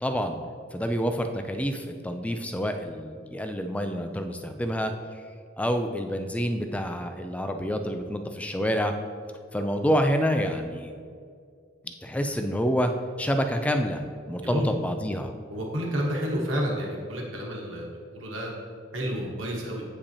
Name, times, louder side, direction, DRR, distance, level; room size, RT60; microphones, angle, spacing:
voice 1, 0.0-0.4 0.7-4.9 5.6-8.9 9.5-10.9 11.8-12.9 13.2-14.0 14.3-15.3, equal, 5° left, 7 dB, 0.3 m, -27 dB
voice 2, 15.5-18.5 18.9-19.8, equal, 75° right, -1 dB, 1.3 m, -30 dB
8.4 x 5.2 x 2.8 m, 2.2 s
head